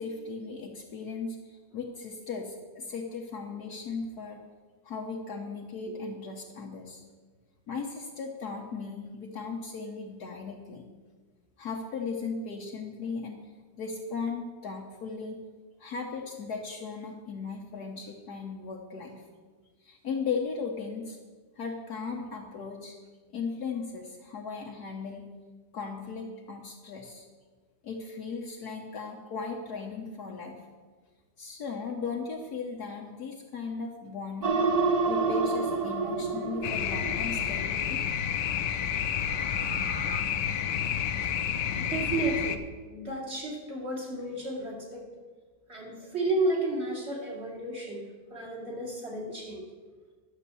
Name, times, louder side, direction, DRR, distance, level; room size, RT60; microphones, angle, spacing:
voice 1, 0.0-4.4 4.8-7.0 7.7-10.9 11.6-13.5 13.7-15.4 15.8-19.2 19.8-21.2 21.6-22.9 23.3-25.3 25.7-27.3 27.8-30.6 31.4-34.6 35.1-38.0, left 4 dB, 65° left, 0 dB, 1.5 m, -37 dB
sound 1, 34.4-37.6 39.0-40.2, right 4 dB, 85° right, 0.3 m, -29 dB
sound 2, 36.6-42.6, left 8 dB, 80° left, 1.4 m, -30 dB
voice 2, 41.8-42.6 42.9-45.0 45.7-48.0 48.3-49.6, right 2 dB, 35° right, -3 dB, 2.8 m, -32 dB
12.0 x 7.2 x 6.9 m, 1.4 s
omnidirectional pair, 1.9 m